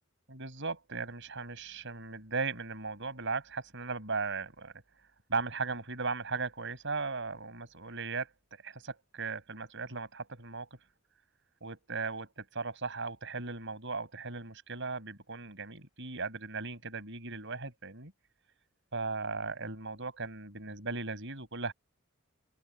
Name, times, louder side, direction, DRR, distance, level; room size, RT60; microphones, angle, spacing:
voice 1, 0.3-4.7 5.3-10.7 11.6-18.1 18.9-21.7, right 4 dB, 60° right, 7.4 m, -37 dB
open air
head